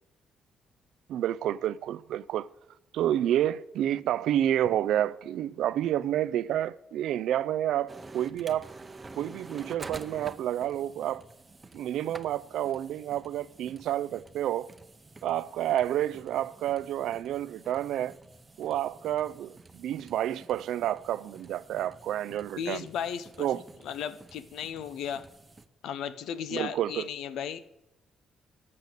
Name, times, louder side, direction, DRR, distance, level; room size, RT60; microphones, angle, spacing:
voice 1, 1.1-2.5 2.9-8.7 9.2-11.2 11.7-14.7 15.2-18.1 18.6-22.8 23.4-23.6 26.5-27.1, right 11 dB, 80° right, 0.4 m, -29 dB
sound 1, 7.9-25.7, right 3 dB, 25° right, 0.8 m, -49 dB
voice 2, 22.6-25.3 25.8-27.6, left 8 dB, 80° left, 0.6 m, -35 dB
9.7 x 8.5 x 6.5 m
cardioid pair, 90°, 0 cm